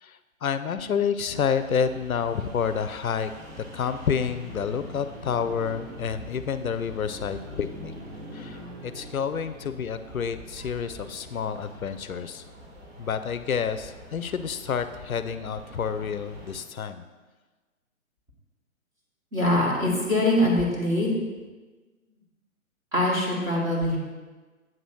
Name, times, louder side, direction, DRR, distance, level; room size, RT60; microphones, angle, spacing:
voice 1, 0.0-3.3 3.6-7.9 8.3-12.4 13.0-17.0, left 7 dB, 80° left, 10 dB, 0.5 m, -29 dB
sound 1, 1.2-16.6, equal, 50° right, 1.7 m, -44 dB
voice 2, 19.3-21.1 22.9-24.0, left 1 dB, 10° right, -6 dB, 0.9 m, -23 dB
7.6 x 3.0 x 6.1 m, 1.3 s
figure-of-eight pair, 130°, 42 cm